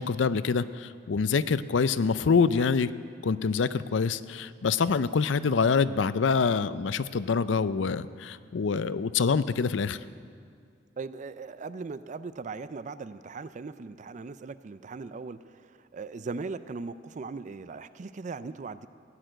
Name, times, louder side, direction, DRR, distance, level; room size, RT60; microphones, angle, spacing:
voice 1, 0.0-2.9 3.2-10.0, left 5 dB, 75° left, 15 dB, 0.5 m, -26 dB
voice 2, 11.0-18.9, right 4 dB, 40° right, 14 dB, 0.4 m, -39 dB
16.0 x 10.0 x 7.6 m, 2.2 s
head